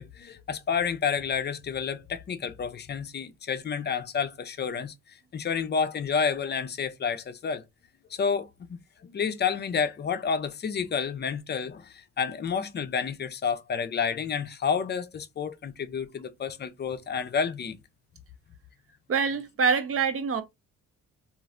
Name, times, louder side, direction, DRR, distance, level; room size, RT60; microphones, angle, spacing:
voice 1, 0.0-7.6 8.1-17.8, left 6 dB, 35° left, 0.5 m, -30 dB
voice 2, 19.1-20.4, right 6 dB, 50° right, 0.7 m, -25 dB
3.0 x 2.5 x 2.4 m
cardioid pair, 90°, 30 cm